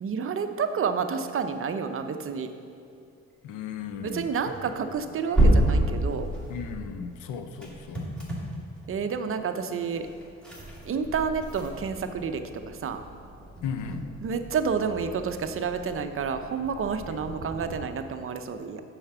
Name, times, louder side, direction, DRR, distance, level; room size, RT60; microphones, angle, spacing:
voice 1, 0.0-2.5 4.0-6.3 8.9-10.1 10.9-13.0 14.2-18.8, right 6 dB, 45° right, 8 dB, 0.7 m, -29 dB
sound 1, 2.7-2.8 3.8-17.8, right 1 dB, 5° left, 2.3 m, -31 dB
voice 2, 3.4-4.5 6.5-8.1 13.6-14.1 17.1-17.2, left 6 dB, 80° left, 9 dB, 0.7 m, -36 dB
7.0 x 5.8 x 6.9 m, 2.5 s
cardioid pair, 90°, 30 cm